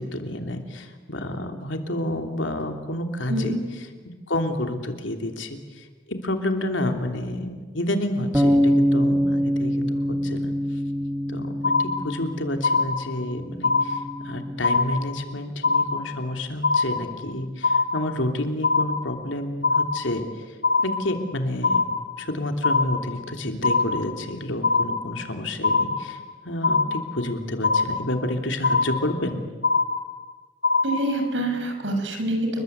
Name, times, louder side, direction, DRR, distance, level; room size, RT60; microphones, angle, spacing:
voice 1, 0.0-3.5 4.3-10.5 11.3-21.8 22.2-29.4, left 1 dB, 90° left, 5 dB, 3.1 m, -29 dB
sound 1, 8.3-14.6, equal, 10° right, 1.1 m, -25 dB
sound 2, 11.6-12.3 12.6-13.3 13.6-14.3 14.6-15.3 15.6-16.3 16.6-17.3 17.6-18.3 18.6-19.3 19.6-20.3 20.6-21.3 21.6-22.3 22.6-23.3 23.6-24.3 24.6-25.3 25.6-26.3 26.6-27.3 27.6-28.3 28.6-29.3 29.6-30.3 30.6-31.3, left 4 dB, 65° left, 3.3 m, -23 dB
voice 2, 30.8-32.6, right 1 dB, 80° right, 5 dB, 6.1 m, -26 dB
29.5 x 22.0 x 8.2 m, 1.4 s
head